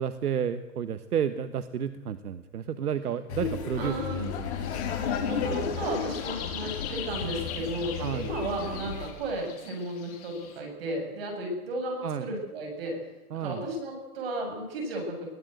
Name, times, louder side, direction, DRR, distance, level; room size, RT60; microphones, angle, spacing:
voice 1, 0.0-5.1 8.0-8.3 12.0-12.3 13.3-13.6, right 8 dB, 75° right, 10 dB, 1.4 m, -32 dB
Laughter, 3.3-9.1, left 7 dB, 45° left, 5.6 m, -33 dB
voice 2, 3.7-4.3 5.2-13.0 13.3-15.3, right 1 dB, 40° right, 1 dB, 7.7 m, -34 dB
sound 1, 4.6-10.6, left 8 dB, 25° left, 3.2 m, -43 dB
22.5 x 16.0 x 8.0 m, 1.1 s
hypercardioid pair, 180°, 46 cm